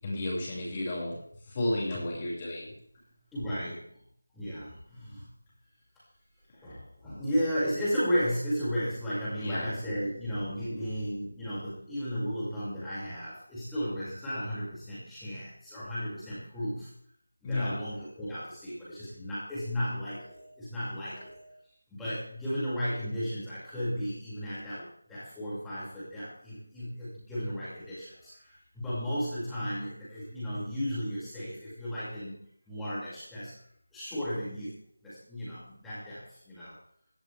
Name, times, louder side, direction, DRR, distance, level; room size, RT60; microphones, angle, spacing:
voice 1, 0.0-1.1 1.5-2.7 9.4-9.7 17.4-17.8, left 1 dB, 20° left, -5 dB, 6.7 m, -32 dB
voice 2, 3.3-3.9 4.3-5.3 6.6-16.9 17.4-21.6 21.9-32.4 32.7-33.6 33.9-34.8 35.0-36.7, equal, 5° left, -12 dB, 6.5 m, -34 dB
18.5 x 15.0 x 3.7 m, 0.64 s
figure-of-eight pair, 165°, 0 cm